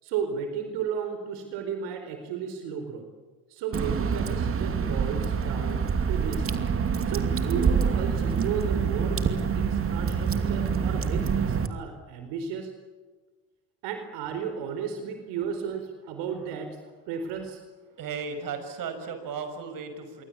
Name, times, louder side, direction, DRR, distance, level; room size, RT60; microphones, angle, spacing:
voice 1, 0.0-3.1 3.5-6.5 7.1-12.7 13.8-17.6, right 7 dB, 80° right, 7 dB, 4.5 m, -34 dB
Water / Drip, 3.7-11.7, right 6 dB, 30° right, 2.6 m, -26 dB
voice 2, 18.0-20.2, right 5 dB, 55° right, 8 dB, 6.6 m, -35 dB
27.5 x 24.0 x 8.6 m, 1.3 s
cardioid pair, 120°, 41 cm